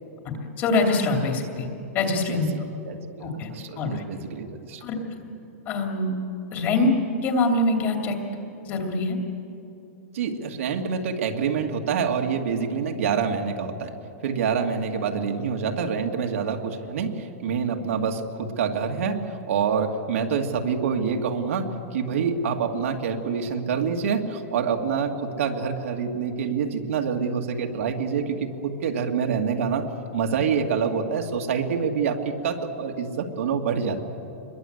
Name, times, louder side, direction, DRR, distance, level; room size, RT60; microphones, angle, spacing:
voice 1, 0.2-1.7 1.9-2.5 3.2-3.5 3.8-4.0 4.8-5.3 5.7-6.1 6.5-7.0 7.2-8.2 8.6-9.2, left 2 dB, 25° left, 3 dB, 2.7 m, -24 dB
voice 2, 2.3-4.8 10.1-13.9 14.2-29.9 30.1-34.0, right 6 dB, 65° right, 3 dB, 2.4 m, -26 dB
26.5 x 22.0 x 8.1 m, 2.9 s
supercardioid pair, 175°, 8 cm